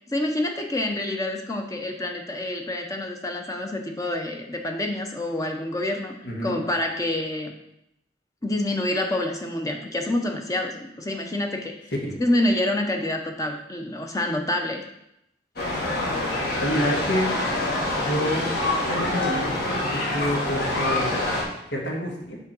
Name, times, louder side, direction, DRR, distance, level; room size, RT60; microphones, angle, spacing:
voice 1, 0.1-6.2 6.4-7.5 8.4-11.8 12.2-14.8, left 1 dB, 20° left, 3 dB, 0.7 m, -27 dB
voice 2, 6.2-6.6 12.0-12.2 16.6-17.4 18.0-18.5 18.9-21.3 21.7-22.4, equal, 80° left, -2 dB, 1.9 m, -28 dB
sound 1, 15.6-21.4, left 2 dB, 60° left, 2.1 m, -26 dB
7.3 x 3.7 x 6.1 m, 0.81 s
head